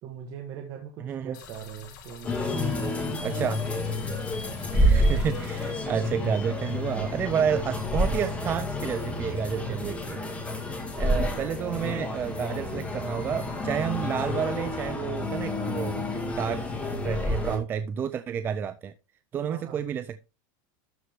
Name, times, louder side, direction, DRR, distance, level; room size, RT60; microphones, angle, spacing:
voice 1, 0.0-4.4 19.5-19.8, right 8 dB, 35° right, 1.4 m, -41 dB
voice 2, 1.0-1.4 3.2-3.6 4.7-10.2 10.5-16.7 16.9-18.9 19.3-20.2, right 8 dB, 20° right, 0.4 m, -30 dB
sound 1, 1.3-5.7, left 6 dB, 80° left, 4.7 m, -47 dB
sound 2, 2.2-17.6, left 1 dB, 10° left, 2.0 m, -29 dB
12.5 x 4.5 x 3.6 m
supercardioid pair, 160°, 11 cm